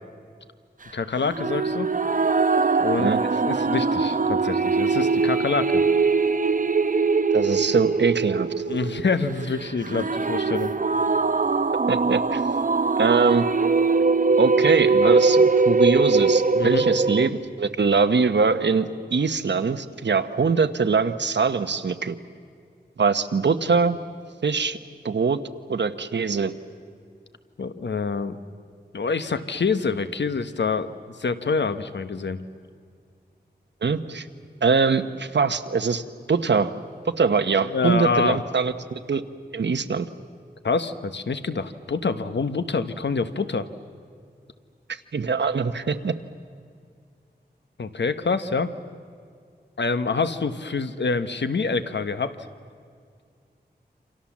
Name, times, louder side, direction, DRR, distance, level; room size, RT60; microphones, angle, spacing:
voice 1, 0.9-1.9 2.8-3.1 3.4-5.8 8.7-10.7 16.6-16.8 27.6-28.4 28.9-30.9 31.2-32.4 37.6-38.4 40.6-43.7 47.8-48.7 49.8-52.4, left 4 dB, 85° left, 10 dB, 1.2 m, -26 dB
sound 1, 1.2-17.3, right 4 dB, 50° right, 0.9 m, -22 dB
voice 2, 7.3-8.5 11.9-12.4 13.0-13.5 14.4-22.2 23.0-24.0 24.4-24.8 25.0-25.4 25.7-26.5 33.8-34.3 34.6-36.0 36.3-36.7 37.2-39.2 39.5-40.1 45.1-46.1, right 5 dB, 85° right, 9 dB, 1.1 m, -22 dB
28.5 x 26.5 x 7.4 m, 2.2 s
wide cardioid pair, 80°, 18 cm